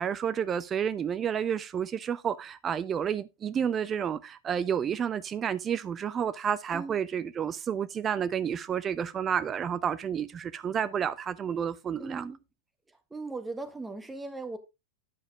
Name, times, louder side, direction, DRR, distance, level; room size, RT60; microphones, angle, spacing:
voice 1, 0.0-12.3, right 8 dB, 25° right, 0.5 m, -30 dB
voice 2, 12.0-12.4 13.1-14.6, right 3 dB, 10° right, 1.5 m, -38 dB
10.0 x 6.4 x 3.6 m
figure-of-eight pair, 90°, 0 cm